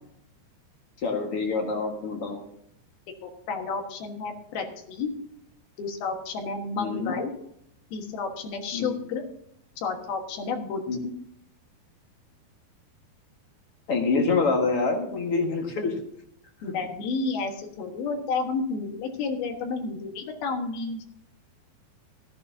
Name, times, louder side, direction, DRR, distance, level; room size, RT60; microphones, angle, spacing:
voice 1, 1.0-2.4 6.7-7.2 8.7-8.9 10.9-11.0 13.9-16.0, left 4 dB, 50° left, 2 dB, 1.9 m, -26 dB
voice 2, 3.2-5.1 5.8-7.3 7.9-9.2 9.8-10.8 16.6-21.0, left 4 dB, 75° left, 3 dB, 3.4 m, -31 dB
15.0 x 13.5 x 2.8 m, 0.72 s
omnidirectional pair, 4.4 m